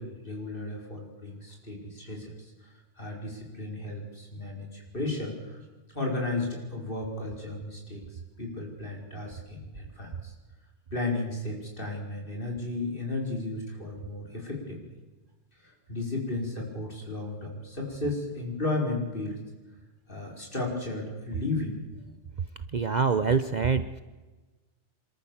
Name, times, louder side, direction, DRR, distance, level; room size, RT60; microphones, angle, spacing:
voice 1, 0.0-2.3 3.0-5.6 5.9-8.0 8.4-10.3 10.9-14.8 15.6-19.4 20.1-21.8, left 2 dB, 45° left, 0 dB, 5.2 m, -34 dB
voice 2, 22.7-24.0, right 5 dB, 45° right, 11 dB, 0.8 m, -25 dB
26.5 x 13.5 x 7.3 m, 1.2 s
omnidirectional pair, 1.2 m